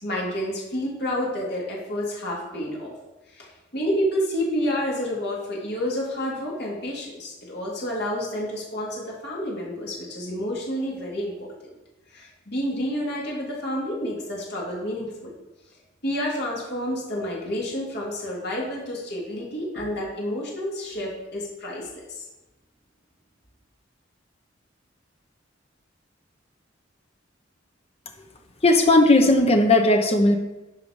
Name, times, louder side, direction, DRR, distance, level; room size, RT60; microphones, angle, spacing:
voice 1, 0.0-2.9 3.3-11.7 12.1-15.3 16.0-22.2, equal, 60° left, -4 dB, 2.8 m, -29 dB
voice 2, 28.6-30.4, left 2 dB, 35° left, 4 dB, 1.1 m, -17 dB
11.5 x 4.9 x 5.1 m, 1.0 s
head